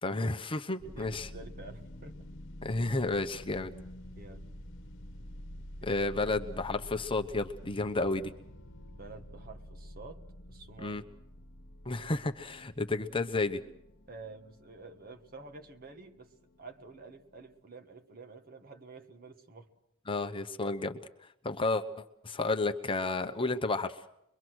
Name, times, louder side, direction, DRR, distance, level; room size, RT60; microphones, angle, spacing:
voice 1, 0.0-1.3 2.6-3.7 5.8-8.3 10.8-11.0 11.8-13.6 20.1-21.0 21.4-21.8 22.2-24.0, left 2 dB, 25° left, 6 dB, 1.0 m, -31 dB
sound 1, 0.8-17.6, equal, 60° left, 1.3 m, -49 dB
voice 2, 0.8-2.3 4.2-4.5 5.8-6.0 8.9-10.2 10.5-11.0 14.1-16.3 16.6-19.7, right 3 dB, 45° right, 5 dB, 1.6 m, -49 dB
23.5 x 23.5 x 6.3 m, 0.80 s
head